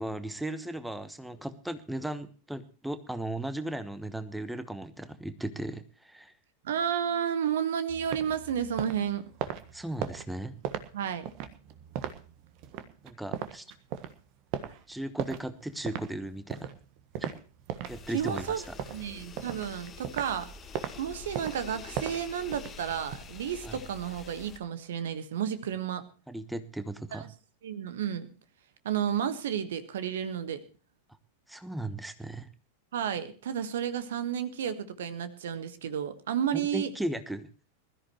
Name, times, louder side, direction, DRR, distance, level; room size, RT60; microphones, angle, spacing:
voice 1, 0.0-6.3 9.7-10.5 13.0-13.6 14.9-16.7 17.2-17.3 17.9-18.7 23.6-23.8 26.3-27.3 31.5-32.5 36.5-37.5, right 1 dB, 5° right, 11 dB, 1.1 m, -36 dB
voice 2, 6.6-9.2 10.9-11.2 18.1-20.5 21.0-26.0 27.1-27.3 27.6-28.3 28.8-30.6 32.9-36.9, right 8 dB, 60° right, 12 dB, 1.5 m, -32 dB
sound 1, 7.9-18.0 18.3-20.4 20.7-20.9 21.3-23.2, right 10 dB, 45° right, 1.4 m, -38 dB
sound 2, 17.9-24.6, left 4 dB, 25° left, 1.5 m, -46 dB
21.0 x 14.0 x 3.1 m, 0.36 s
figure-of-eight pair, 90°, 0 cm